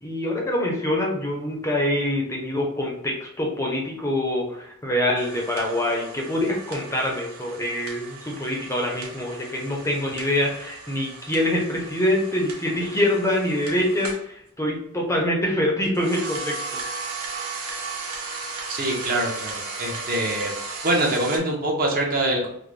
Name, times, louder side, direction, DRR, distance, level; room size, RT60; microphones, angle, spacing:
voice 1, 0.0-16.6, left 1 dB, 15° left, -1 dB, 0.5 m, -25 dB
sound 1, 5.2-14.3 15.8-21.4, right 3 dB, 75° right, 0.7 m, -36 dB
voice 2, 18.7-20.5 20.8-22.5, right 1 dB, 40° right, -1 dB, 0.8 m, -24 dB
3.6 x 2.1 x 3.1 m, 0.74 s
head